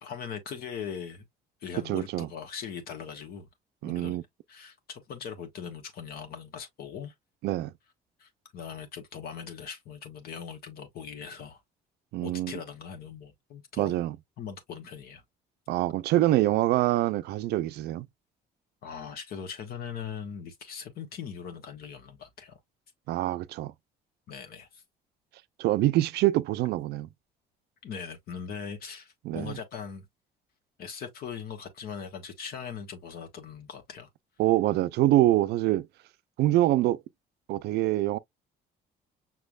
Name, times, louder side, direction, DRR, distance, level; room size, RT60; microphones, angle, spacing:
voice 1, 0.0-1.2 1.6-3.5 3.8-4.2 4.5-7.1 8.2-11.6 12.2-13.9 14.4-15.2 18.8-22.6 24.3-24.8 27.8-30.0 30.8-34.1, left 7 dB, 65° left, 1.2 m, -40 dB
voice 2, 1.9-2.3 3.8-4.2 7.4-7.7 12.1-12.5 13.8-14.1 15.7-18.1 23.1-23.7 25.6-27.1 29.3-29.5 34.4-35.9 36.4-37.0 37.5-38.2, right 15 dB, 75° right, 0.4 m, -25 dB
5.9 x 3.3 x 2.3 m
cardioid pair, 110°, 17 cm